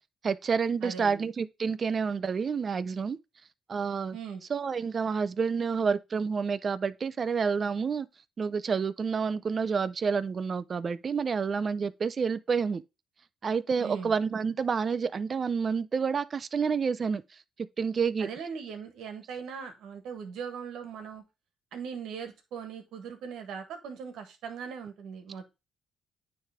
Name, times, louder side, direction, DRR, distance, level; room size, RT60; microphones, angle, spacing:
voice 1, 0.2-3.2 3.7-4.2 4.5-8.1 8.4-12.8 13.4-17.2 17.8-18.3, right 5 dB, 45° right, 0.5 m, -29 dB
voice 2, 0.8-1.3 4.1-4.4 13.8-14.1 18.2-21.2 21.7-25.4, right 6 dB, 80° right, 1.6 m, -40 dB
9.4 x 3.4 x 3.6 m
cardioid pair, 90°, 0 cm